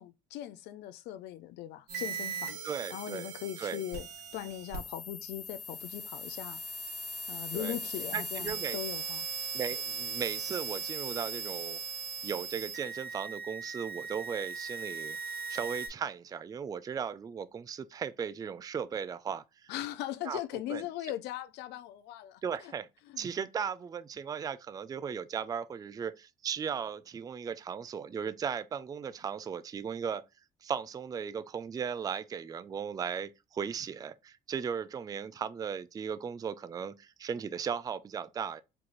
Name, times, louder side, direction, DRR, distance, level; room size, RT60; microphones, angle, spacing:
voice 1, 0.0-2.6 2.9-4.1 4.3-6.6 7.3-9.3 19.7-22.4 23.1-23.2, left 13 dB, 85° left, 0.5 m, -39 dB
sound 1, 1.9-15.9, right 3 dB, 70° right, 2.3 m, -39 dB
voice 2, 2.6-3.3 3.6-3.8 7.5-7.8 8.1-8.8 9.5-11.8 12.2-19.7 20.2-20.8 22.4-22.9 23.2-30.2 30.6-38.6, right 7 dB, 20° right, 0.3 m, -37 dB
4.6 x 2.5 x 3.8 m
cardioid pair, 110°, 17 cm